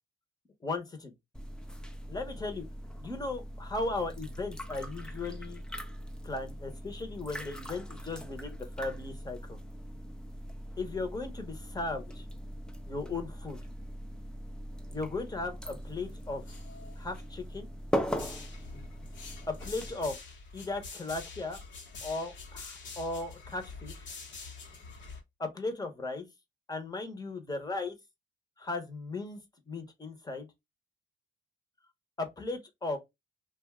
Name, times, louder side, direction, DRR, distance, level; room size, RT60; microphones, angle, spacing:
voice 1, 0.6-1.1 2.1-2.6 3.0-5.6 6.2-9.6 10.8-12.2 12.9-13.6 14.9-16.4 17.0-17.7 19.5-20.2 20.5-21.6 22.0-24.1 25.4-26.3 26.7-28.0 28.6-29.4 29.7-30.5 32.2-33.0, left 3 dB, 20° left, 0.9 m, -36 dB
sound 1, 1.3-19.9, equal, 5° left, 0.5 m, -40 dB
sound 2, 15.6-17.2 17.9-25.2, left 4 dB, 70° left, 1.0 m, -46 dB
2.5 x 2.3 x 3.5 m
cardioid pair, 90°, 20 cm